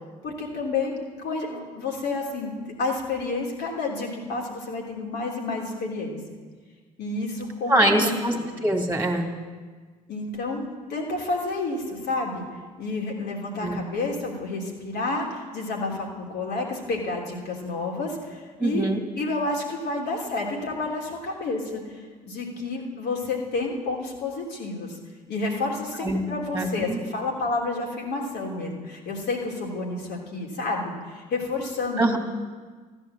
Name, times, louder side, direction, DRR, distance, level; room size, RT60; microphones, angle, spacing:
voice 1, 0.2-2.5 2.8-6.2 7.0-8.4 10.1-12.4 12.8-18.9 19.1-25.0 25.3-32.1, left 3 dB, 60° left, -1 dB, 3.2 m, -30 dB
voice 2, 7.7-8.4 8.6-9.3 13.6-13.8 18.6-19.0 26.0-27.0 32.0-32.2, right 1 dB, 10° right, 3 dB, 2.4 m, -23 dB
14.5 x 11.0 x 7.5 m, 1.5 s
hypercardioid pair, 55°, 20 cm